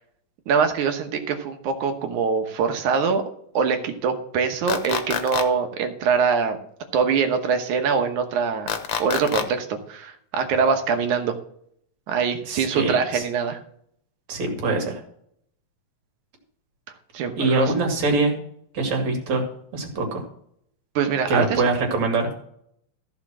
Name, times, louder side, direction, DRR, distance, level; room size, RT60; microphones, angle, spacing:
voice 1, 0.5-3.2 3.5-6.6 6.9-8.7 9.0-11.4 12.1-13.6 17.1-17.7 21.0-21.6, right 6 dB, 85° right, 6 dB, 2.6 m, -23 dB
sound 1, 4.7-5.4 8.7-9.4, left 8 dB, 60° left, 1.6 m, -26 dB
voice 2, 12.5-13.2 14.3-15.0 17.4-18.4 18.7-20.2 21.3-22.3, right 3 dB, 65° right, 2 dB, 3.4 m, -24 dB
14.5 x 5.2 x 6.1 m, 0.67 s
omnidirectional pair, 3.4 m